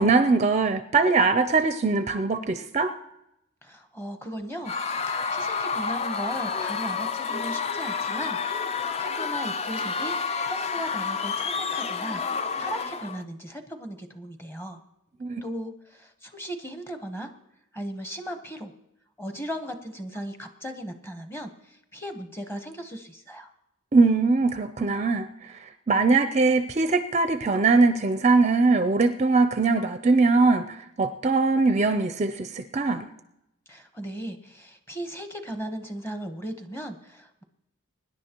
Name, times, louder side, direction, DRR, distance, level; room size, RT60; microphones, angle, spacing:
voice 1, 0.0-2.9 15.2-15.4 23.9-25.3 25.9-33.1, right 3 dB, 30° right, 9 dB, 0.5 m, -21 dB
voice 2, 3.6-10.2 10.5-12.2 12.6-14.8 15.4-17.3 17.7-18.7 19.2-23.5 33.7-37.4, right 1 dB, 10° left, 6 dB, 1.0 m, -37 dB
Screaming / Cheering / Crowd, 4.7-13.2, left 5 dB, 30° left, 0.4 m, -29 dB
23.5 x 10.5 x 3.0 m, 0.85 s
head